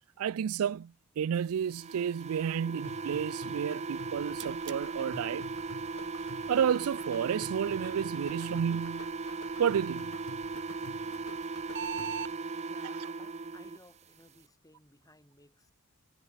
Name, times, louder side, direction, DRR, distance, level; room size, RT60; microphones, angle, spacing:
voice 1, 0.2-5.5 6.5-9.1 9.6-10.1, right 8 dB, 80° right, 0.4 m, -31 dB
sound 1, 1.7-13.8, right 4 dB, 30° right, 0.6 m, -38 dB
sound 2, 2.8-12.4, left 3 dB, 75° left, 1.1 m, -50 dB
sound 3, 4.1-12.3, right 6 dB, 55° right, 1.5 m, -46 dB
voice 2, 12.6-15.7, left 2 dB, 15° left, 3.7 m, -59 dB
head